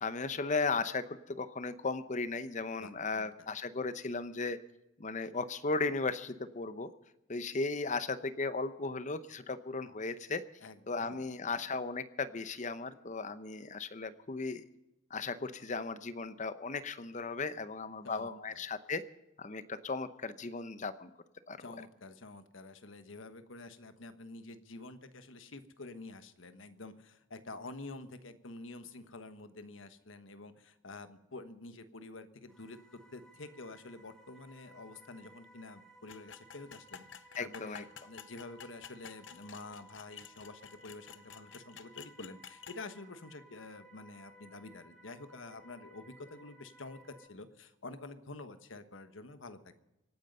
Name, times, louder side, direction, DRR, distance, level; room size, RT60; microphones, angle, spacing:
voice 1, 0.0-4.6 5.0-6.9 7.3-10.4 10.9-14.6 15.1-19.0 19.4-21.1 21.5-21.6 37.3-37.8, left 3 dB, 40° left, 13 dB, 0.8 m, -36 dB
voice 2, 2.8-3.5 10.6-11.3 18.0-18.6 21.6-49.8, left 2 dB, 90° left, 10 dB, 1.3 m, -48 dB
sound 1, 32.5-47.3, equal, 5° left, 2.1 m, -59 dB
sound 2, 36.1-42.8, left 8 dB, 70° left, 0.8 m, -51 dB
25.5 x 9.2 x 5.5 m, 0.92 s
head